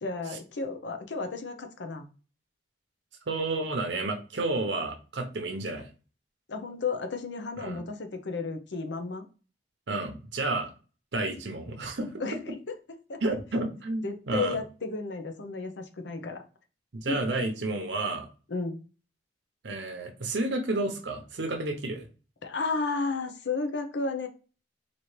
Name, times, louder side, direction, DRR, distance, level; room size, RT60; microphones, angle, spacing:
voice 1, 0.0-2.1 6.5-9.3 12.2-12.5 13.1-13.2 14.0-16.4 17.1-17.2 18.5-18.8 22.4-24.3, left 4 dB, 75° left, 5 dB, 0.7 m, -33 dB
voice 2, 3.3-5.9 7.6-7.8 9.9-10.7 11.1-12.1 13.2-14.6 16.9-18.3 19.6-22.1, right 2 dB, 80° right, 4 dB, 0.8 m, -31 dB
4.2 x 2.8 x 3.2 m, 0.35 s
head